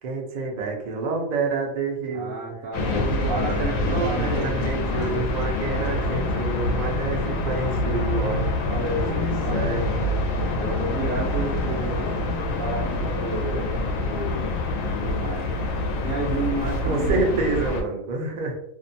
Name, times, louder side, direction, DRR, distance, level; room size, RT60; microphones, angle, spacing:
voice 1, 0.0-2.3 2.9-8.5 8.9-9.8 16.8-18.6, right 3 dB, 55° right, 0 dB, 0.4 m, -28 dB
voice 2, 2.1-5.2 8.1-10.2 10.5-12.1 12.6-14.5 15.0-15.5 16.0-17.3, right 2 dB, 75° right, -4 dB, 0.9 m, -32 dB
sound 1, 2.7-17.8, left 2 dB, 85° left, 1.0 m, -26 dB
2.7 x 2.1 x 2.6 m, 0.76 s
omnidirectional pair, 1.4 m